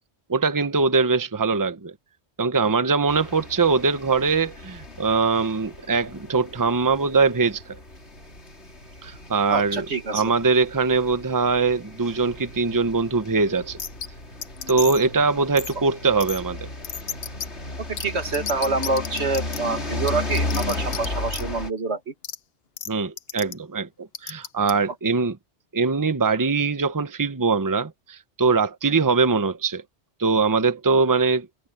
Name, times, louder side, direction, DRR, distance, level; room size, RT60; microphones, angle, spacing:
voice 1, 0.3-1.9 2.4-7.8 9.0-9.9 10.1-13.8 14.7-16.7 22.9-25.4 25.7-29.8 30.2-31.5, right 4 dB, 20° right, 0.9 m, -22 dB
sound 1, 3.1-21.7, left 2 dB, 85° left, 3.8 m, -35 dB
voice 2, 9.5-10.2 17.8-22.1, right 3 dB, 85° right, 2.4 m, -26 dB
sound 2, 13.8-14.1 14.4-15.1 15.6-15.7 16.2-16.4 16.8-17.5 18.0-18.1 18.3-19.6 20.1-21.1 21.3-21.4 22.2-22.4 22.8-22.9 23.2-23.5 24.1-24.7, left 8 dB, 65° left, 1.1 m, -32 dB
omnidirectional pair, 1.1 m